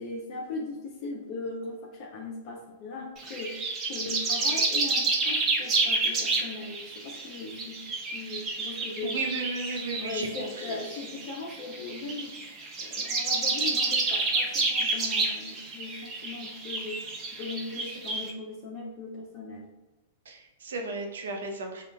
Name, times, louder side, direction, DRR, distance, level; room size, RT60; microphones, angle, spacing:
voice 1, 0.0-3.6 3.9-7.8 8.1-9.3 10.0-12.4 12.8-17.0 17.3-19.7, left 3 dB, 50° left, 0 dB, 0.6 m, -38 dB
sound 1, 3.2-18.3, right 3 dB, 30° right, 0.7 m, -30 dB
voice 2, 9.0-10.8 18.1-18.2 20.3-21.8, right 3 dB, 80° right, 3 dB, 0.7 m, -34 dB
3.7 x 2.3 x 3.4 m, 1.1 s
hypercardioid pair, 115°, 0 cm